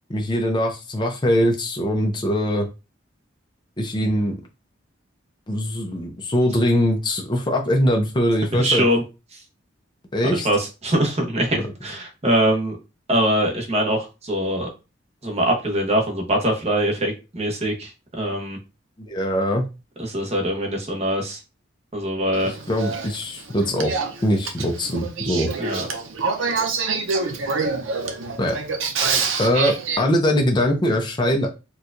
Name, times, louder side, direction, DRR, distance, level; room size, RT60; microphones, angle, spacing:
voice 1, 0.1-2.7 3.8-4.4 5.5-8.8 10.1-10.5 11.6-11.7 19.0-19.7 22.7-23.9 24.2-25.5 28.4-28.6 29.4-31.5, equal, 25° left, 1 dB, 0.5 m, -22 dB
voice 2, 8.5-9.0 10.3-12.8 13.1-14.7 15.2-18.6 20.0-21.4 21.9-22.5 25.6-25.9, right 1 dB, 35° right, 1 dB, 0.9 m, -23 dB
Male speech man speaking / Female speech woman speaking / Conversation, 22.3-30.0, right 4 dB, 75° right, 0.7 m, -26 dB
4.3 x 2.3 x 2.5 m, 0.28 s
head